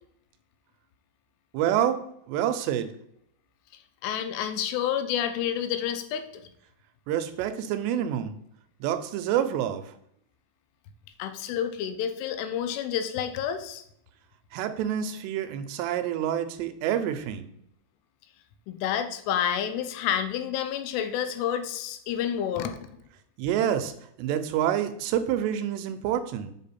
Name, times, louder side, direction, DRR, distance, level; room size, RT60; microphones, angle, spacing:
voice 1, 1.5-2.0 2.3-2.9 7.1-8.4 8.8-9.9 14.5-17.5 23.4-23.9 24.2-26.5, right 10 dB, 85° right, 10 dB, 2.7 m, -27 dB
voice 2, 4.0-6.4 11.2-13.8 18.7-22.8, left 9 dB, 85° left, 8 dB, 2.6 m, -29 dB
7.4 x 3.7 x 4.2 m, 0.72 s
omnidirectional pair, 5.0 m